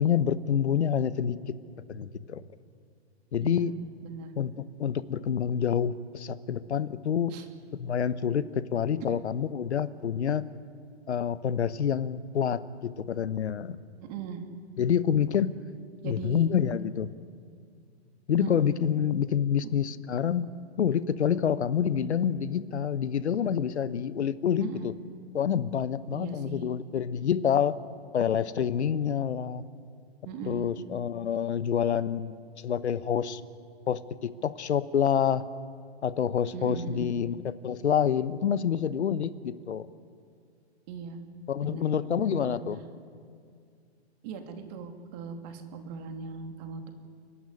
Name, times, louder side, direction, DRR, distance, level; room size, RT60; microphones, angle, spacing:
voice 1, 0.0-1.4 1.9-2.4 3.3-3.7 4.4-4.5 4.8-7.4 7.8-10.5 11.1-12.6 13.0-13.8 14.8-15.6 16.0-17.1 18.3-20.5 20.8-24.9 25.3-27.8 28.1-29.6 30.4-33.4 33.9-35.4 36.0-39.9 41.5-42.8, left 8 dB, 85° left, 15 dB, 1.1 m, -27 dB
voice 2, 14.0-14.5 16.0-16.5 18.4-18.7 24.6-24.9 26.1-26.7 30.2-30.7 36.5-37.1 40.9-41.2 41.6-41.9 42.2-42.6 44.2-46.9, right 6 dB, 40° right, 5 dB, 2.8 m, -39 dB
30.0 x 11.5 x 9.9 m, 2.2 s
hypercardioid pair, 145°, 33 cm